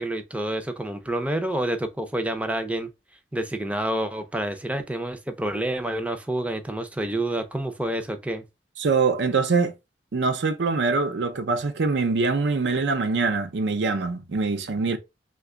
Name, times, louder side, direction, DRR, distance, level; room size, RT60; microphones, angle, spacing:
voice 1, 0.0-2.9 3.3-8.4, right 1 dB, 10° right, 0.4 m, -28 dB
voice 2, 8.8-9.7 10.1-15.0, right 4 dB, 75° right, 0.5 m, -24 dB
2.9 x 2.2 x 3.5 m
head